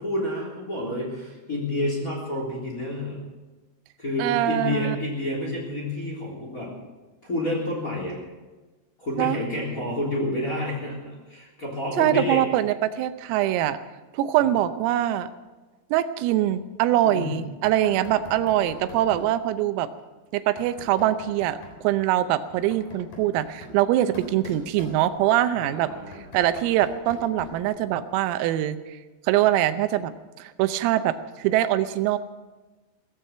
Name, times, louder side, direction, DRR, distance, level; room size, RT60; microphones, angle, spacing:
voice 1, 0.0-3.2 4.0-6.7 7.2-8.2 9.0-12.4 17.0-17.4 25.5-26.2, left 1 dB, 20° left, -1 dB, 3.1 m, -29 dB
voice 2, 4.2-5.0 9.2-9.4 12.0-13.8 14.1-15.3 15.9-19.9 20.3-25.9 26.3-29.0 29.2-30.1 30.4-32.2, right 13 dB, 85° right, 11 dB, 3.5 m, -23 dB
Knock, 17.6-19.4 20.6-21.8 22.5-25.4 25.9-27.7, left 2 dB, 45° left, 4.7 m, -43 dB
17.0 x 15.0 x 5.6 m, 1.2 s
omnidirectional pair, 5.9 m